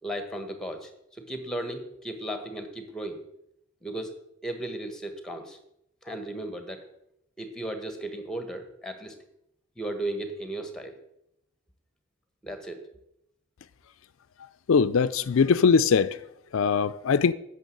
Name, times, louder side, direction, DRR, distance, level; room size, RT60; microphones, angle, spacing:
voice 1, 0.0-3.2 3.8-4.2 4.4-5.6 6.0-6.8 7.4-9.1 9.8-11.0 12.4-12.8, right 1 dB, 5° left, 1.3 m, -35 dB
voice 2, 14.7-16.2 16.5-17.3, left 5 dB, 80° left, 0.4 m, -21 dB
9.2 x 6.8 x 7.7 m
head